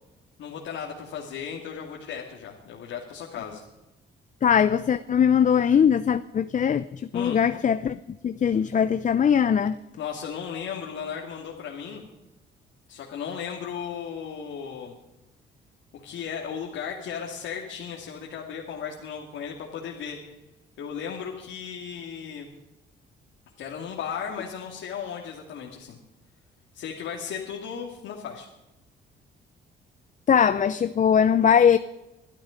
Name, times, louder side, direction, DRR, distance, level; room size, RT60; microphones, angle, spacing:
voice 1, 0.4-3.6 7.1-7.4 10.0-12.0 12.9-15.0 15.9-20.2 20.8-22.5 23.6-26.0 26.7-28.5, left 7 dB, 80° left, -1 dB, 2.4 m, -35 dB
voice 2, 4.4-9.8 30.3-31.8, left 7 dB, 40° left, 12 dB, 0.6 m, -21 dB
23.0 x 12.0 x 5.2 m, 1.0 s
cardioid pair, 90°, 20 cm